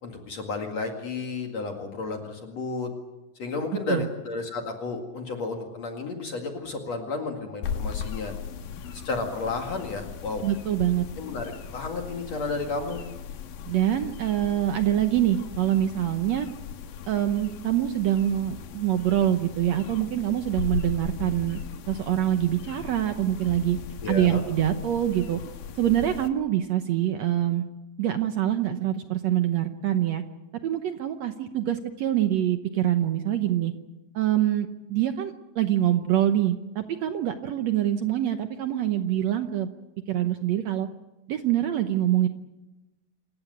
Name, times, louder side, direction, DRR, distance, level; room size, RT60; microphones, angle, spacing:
voice 1, 0.0-2.9 3.4-8.3 9.0-10.5 11.2-13.0 24.0-24.4, left 3 dB, 50° left, 3 dB, 3.0 m, -32 dB
sound 1, 7.6-26.3, left 7 dB, 70° left, 2.8 m, -38 dB
voice 2, 10.4-11.1 13.7-16.5 17.1-21.6 21.9-23.8 24.1-25.4 25.8-27.6 28.0-30.2 30.6-33.7 34.1-39.7 40.1-40.9 41.3-42.3, right 12 dB, 75° right, 8 dB, 1.6 m, -25 dB
28.0 x 15.0 x 9.3 m, 1.0 s
omnidirectional pair, 4.2 m